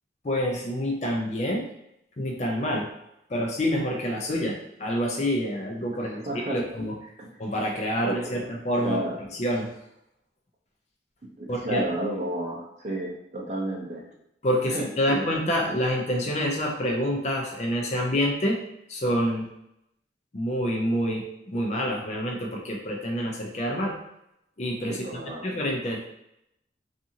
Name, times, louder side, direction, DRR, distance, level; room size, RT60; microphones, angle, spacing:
voice 1, 0.2-1.7 2.2-2.9 3.3-6.9 7.4-9.0 9.3-9.7 11.5-11.8 14.4-18.6 18.9-19.5 20.3-21.3 21.5-24.0 24.6-25.0 25.4-26.1, equal, 40° left, 0 dB, 0.4 m, -27 dB
voice 2, 6.2-6.6 7.2-7.4 8.0-8.4 8.8-9.2 11.4-14.0 14.7-15.2 24.9-25.5, right 1 dB, 40° right, -2 dB, 0.5 m, -32 dB
2.6 x 2.5 x 2.7 m, 0.81 s
head